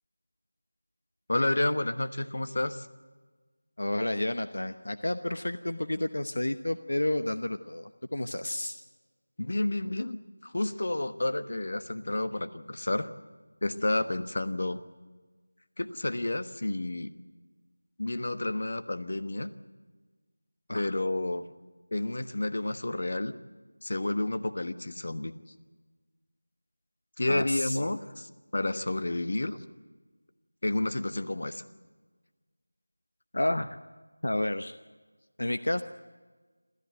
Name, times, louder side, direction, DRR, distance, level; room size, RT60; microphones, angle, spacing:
voice 1, 1.3-2.9 9.4-13.1 13.6-14.8 15.8-17.1 18.0-19.5 20.7-21.4 21.9-23.3 23.8-25.3 27.2-29.6 30.6-31.6, left 2 dB, 55° left, 10 dB, 1.3 m, -30 dB
voice 2, 3.8-8.8 20.7-20.9 27.3-27.8 33.3-33.8 34.2-34.8 35.4-35.8, left 1 dB, 70° left, 9 dB, 0.9 m, -30 dB
27.5 x 13.5 x 9.1 m, 1.4 s
figure-of-eight pair, 175°, 0 cm